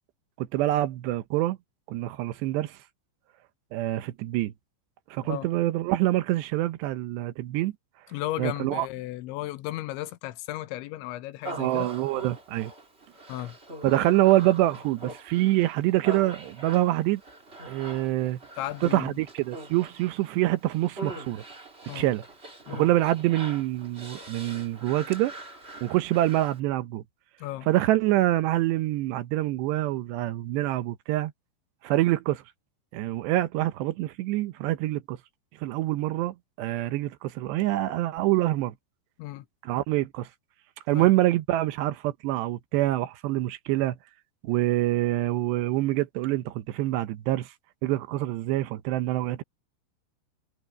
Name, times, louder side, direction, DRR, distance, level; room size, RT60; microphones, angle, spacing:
voice 1, 0.4-1.6 1.9-2.8 3.7-4.5 5.1-7.7 8.4-8.9 11.6-12.7 13.8-17.2 17.7-18.4 18.8-21.4 21.9-22.2 22.7-25.3 25.8-27.0 27.7-31.3 31.8-32.4 32.9-35.2 35.6-38.7 39.6-40.3 40.9-44.0 44.4-47.5 47.8-49.4, right 16 dB, 75° right, 2.9 m, -26 dB
voice 2, 8.1-11.9 13.3-13.6 18.6-19.2 21.9-22.1 22.7-22.9 27.4-27.7 39.2-39.5 40.9-41.1, left 15 dB, 80° left, 3.2 m, -35 dB
Human voice, 11.4-26.6, right 2 dB, 25° right, 1.4 m, -43 dB
omnidirectional pair, 5.3 m